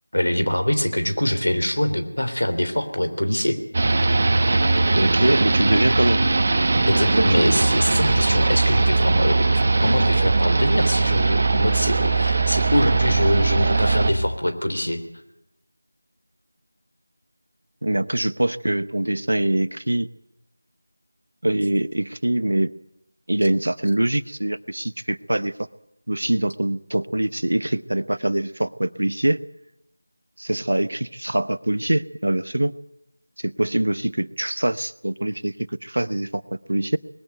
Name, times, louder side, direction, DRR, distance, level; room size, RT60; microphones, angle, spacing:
voice 1, 0.1-3.6 6.9-15.0, left 1 dB, 90° left, 8 dB, 3.3 m, -23 dB
sound 1, 3.7-14.1, right 3 dB, 35° right, 1.3 m, -20 dB
voice 2, 4.9-6.3 7.2-7.7 17.8-20.1 21.4-22.7 23.3-25.5 26.1-29.4 30.4-32.7 33.4-37.0, right 1 dB, 75° right, 16 dB, 0.8 m, -23 dB
20.0 x 15.0 x 9.2 m, 0.84 s
figure-of-eight pair, 175°, 0 cm